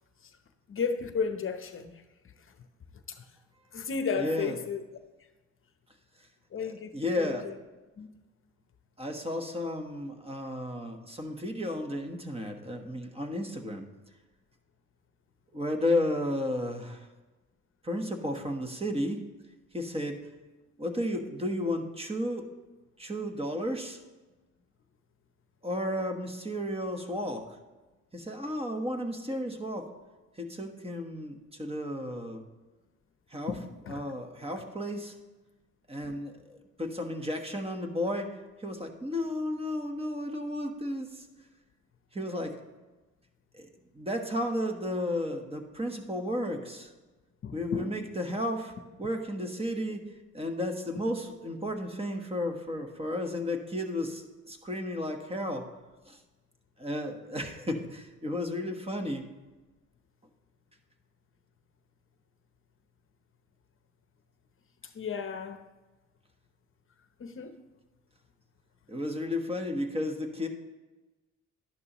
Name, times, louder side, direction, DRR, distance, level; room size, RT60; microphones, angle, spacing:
voice 1, 0.7-2.6 2.9-3.3 3.7-4.8 6.5-7.6 8.0-8.1 33.5-34.0 36.0-36.2 47.4-47.9 64.8-65.6 67.2-67.6, left 5 dB, 45° left, 8 dB, 0.8 m, -34 dB
voice 2, 4.2-4.5 6.2-6.3 6.9-7.5 9.0-13.9 15.5-17.1 17.8-19.2 19.7-20.2 20.8-22.5 23.0-24.0 25.6-27.6 28.1-29.9 30.4-32.4 33.3-33.5 33.9-35.1 35.9-41.3 42.1-42.6 43.5-43.7 43.9-46.9 47.5-48.7 49.0-50.0 50.3-55.7 56.1-56.2 56.8-59.3 68.9-70.5, left 1 dB, 20° right, 4 dB, 1.3 m, -33 dB
11.5 x 10.5 x 3.1 m, 1.2 s
cardioid pair, 90°, 30 cm